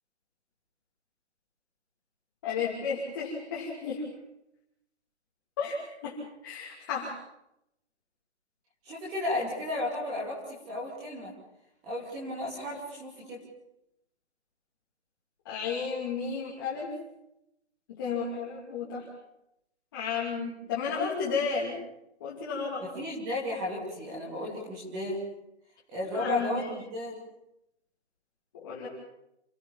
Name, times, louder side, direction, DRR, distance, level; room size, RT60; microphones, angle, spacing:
voice 1, 2.4-4.0 5.6-6.2 6.4-7.1 15.4-16.9 17.9-19.1 19.9-21.8 22.2-22.8 26.1-26.7 28.6-28.9, left 5 dB, 20° left, -6 dB, 2.8 m, -32 dB
voice 2, 8.9-11.3 11.8-13.4 22.8-25.2 25.9-27.2, left 1 dB, 10° right, -3 dB, 2.7 m, -34 dB
28.0 x 15.0 x 7.3 m, 0.84 s
hypercardioid pair, 175°, 34 cm